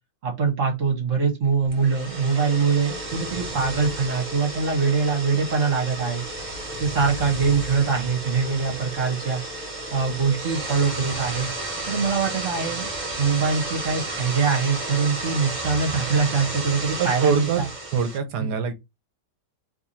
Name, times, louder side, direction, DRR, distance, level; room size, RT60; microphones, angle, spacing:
voice 1, 0.2-6.2 6.8-9.4 9.9-11.5 11.9-12.9 13.2-17.7 18.4-18.5, right 5 dB, 45° right, 1.8 m, -23 dB
sound 1, 1.6-18.2, right 2 dB, 30° right, 1.0 m, -32 dB
voice 2, 17.0-17.6 17.9-18.7, right 7 dB, 70° right, 1.4 m, -24 dB
3.5 x 3.4 x 4.3 m
omnidirectional pair, 1.9 m